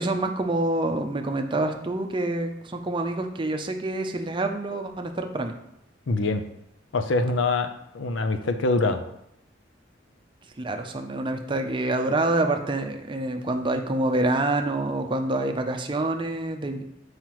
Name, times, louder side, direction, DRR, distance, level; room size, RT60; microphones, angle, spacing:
voice 1, 0.0-5.5 10.6-16.8, right 2 dB, 25° right, 5 dB, 0.5 m, -27 dB
voice 2, 6.1-6.4 6.9-7.7 7.9-9.0, left 3 dB, 85° left, 7 dB, 0.6 m, -24 dB
7.4 x 4.8 x 3.1 m, 0.78 s
head